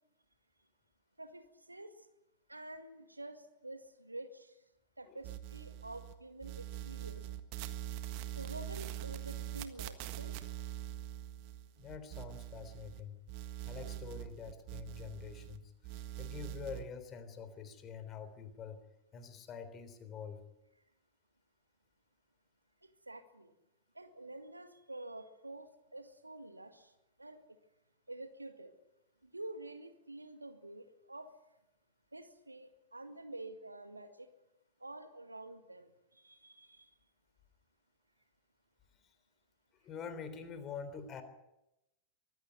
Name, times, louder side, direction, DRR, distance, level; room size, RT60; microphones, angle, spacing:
voice 1, 1.2-1.9 2.5-4.5 5.0-7.2 8.4-10.4 22.8-23.5 23.9-26.9 27.2-27.6 28.1-28.7 29.2-31.3 32.1-34.3 34.8-36.9, right 2 dB, 85° right, 8 dB, 2.0 m, -48 dB
sound 1, 5.2-6.1 6.4-13.0 13.3-15.6 15.8-16.8, right 13 dB, 45° right, 1.6 m, -43 dB
voice 2, 11.8-13.2 13.6-18.8 19.1-20.4 39.7-41.2, left 6 dB, 30° left, 10 dB, 3.6 m, -46 dB
23.5 x 15.5 x 9.5 m, 0.91 s
figure-of-eight pair, 90°, 0 cm